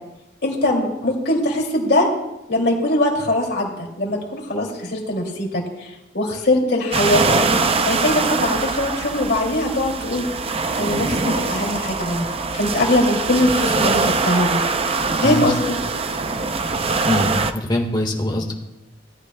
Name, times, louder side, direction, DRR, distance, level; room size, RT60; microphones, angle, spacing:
voice 1, 0.4-2.1 2.5-7.4 7.8-10.2 10.8-12.3 12.5-14.6 15.2-15.8, left 1 dB, 60° left, -1 dB, 2.6 m, -21 dB
sound 1, 6.9-17.5, right 4 dB, 30° right, 0.5 m, -22 dB
voice 2, 15.2-15.5 17.0-18.5, left 1 dB, 25° left, 1 dB, 1.5 m, -23 dB
17.5 x 13.0 x 2.2 m, 0.95 s
head